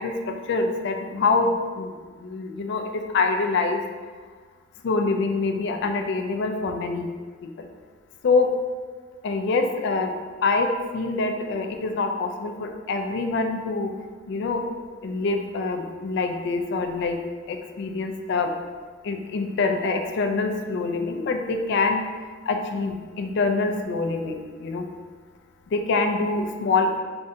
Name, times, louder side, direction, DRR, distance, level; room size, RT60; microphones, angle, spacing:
voice 1, 0.0-1.9 2.2-3.8 4.8-7.1 7.4-7.7 8.2-8.5 9.2-10.1 10.4-13.9 14.3-14.6 15.0-17.2 17.5-18.5 19.0-22.0 22.5-24.9 25.7-27.0, left 3 dB, 60° left, 4 dB, 0.3 m, -25 dB
3.6 x 3.2 x 2.7 m, 1.5 s
head